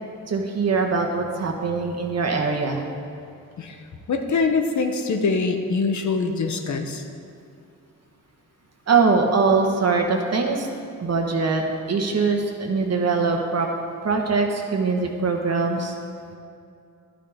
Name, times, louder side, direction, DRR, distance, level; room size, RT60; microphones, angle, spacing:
voice 1, 0.3-2.8 8.9-10.7 11.0-13.7 14.0-15.9, right 4 dB, 55° right, 3 dB, 1.2 m, -22 dB
voice 2, 4.1-7.0, left 4 dB, 65° left, 5 dB, 0.9 m, -23 dB
12.0 x 8.9 x 3.5 m, 2.5 s
cardioid pair, 100°, 32 cm